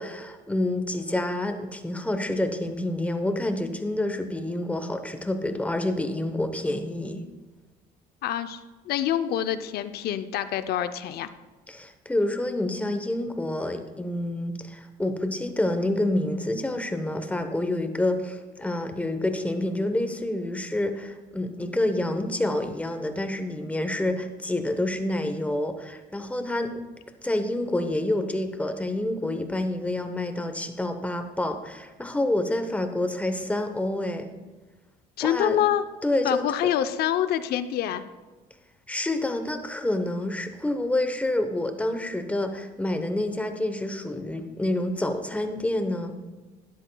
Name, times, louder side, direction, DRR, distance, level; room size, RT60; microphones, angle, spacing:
voice 1, 0.0-7.2 11.7-26.8 27.2-34.3 35.2-35.6 36.0-36.7 38.9-46.2, left 1 dB, 10° left, 7 dB, 0.9 m, -28 dB
voice 2, 8.2-8.6 8.9-11.3 35.2-35.8 36.2-38.0, left 11 dB, 70° left, 11 dB, 0.6 m, -26 dB
12.5 x 10.0 x 2.3 m, 1.2 s
cardioid pair, 110°, 17 cm